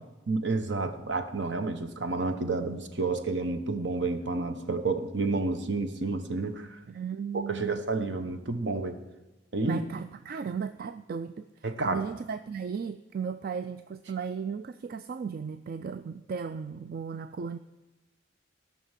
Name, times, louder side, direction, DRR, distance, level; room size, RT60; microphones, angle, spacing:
voice 1, 0.3-6.8 7.3-9.0 9.5-9.8 11.6-12.0, right 3 dB, 70° right, 8 dB, 1.0 m, -30 dB
voice 2, 6.9-7.8 9.7-17.6, right 6 dB, 50° right, 11 dB, 0.3 m, -36 dB
14.5 x 6.0 x 7.4 m, 1.1 s
head